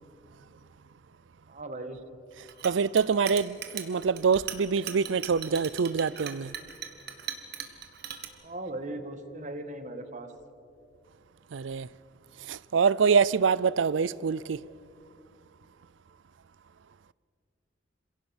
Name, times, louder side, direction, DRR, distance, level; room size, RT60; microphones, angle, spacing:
voice 1, 1.5-2.0 8.4-10.3, right 1 dB, 40° right, 1.7 m, -38 dB
Chink clink, 2.5-8.3, right 9 dB, 60° right, 1.8 m, -39 dB
voice 2, 2.6-6.5 11.5-11.9 12.5-14.6, right 5 dB, 85° right, 0.5 m, -25 dB
26.5 x 17.0 x 7.2 m
head